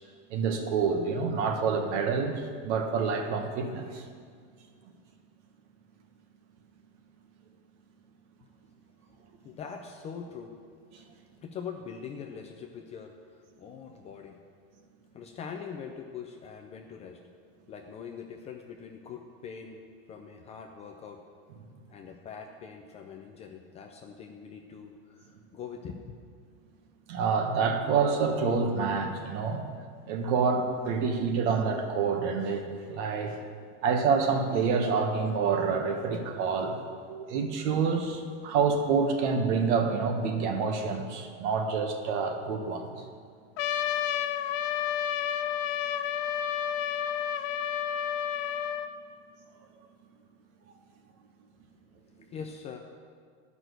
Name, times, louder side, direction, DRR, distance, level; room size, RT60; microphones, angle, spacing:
voice 1, 0.3-4.0 10.9-11.0 27.1-29.7 30.1-33.4 33.8-36.8 37.0-43.0, right 5 dB, 65° right, 4 dB, 1.5 m, -27 dB
voice 2, 9.4-10.6 11.4-14.4 15.1-17.2 17.7-21.2 21.9-26.1 52.2-52.8, left 6 dB, 20° left, 3 dB, 0.3 m, -43 dB
Trumpet, 43.6-48.9, left 10 dB, 80° left, 0.7 m, -30 dB
11.0 x 6.1 x 7.9 m, 2.1 s
supercardioid pair, 160°, 37 cm